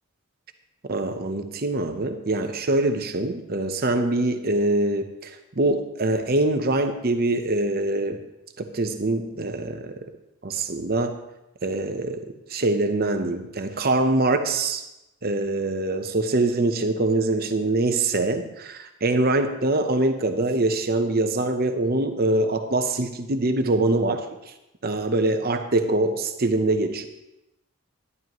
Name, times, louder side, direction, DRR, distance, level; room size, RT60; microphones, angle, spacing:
voice 1, 0.9-5.3 5.6-8.2 8.6-10.1 10.4-11.1 11.6-12.2 12.5-14.8 15.2-24.2 24.8-27.1, right 2 dB, 45° right, 7 dB, 0.8 m, -24 dB
12.0 x 11.0 x 3.0 m, 0.93 s
head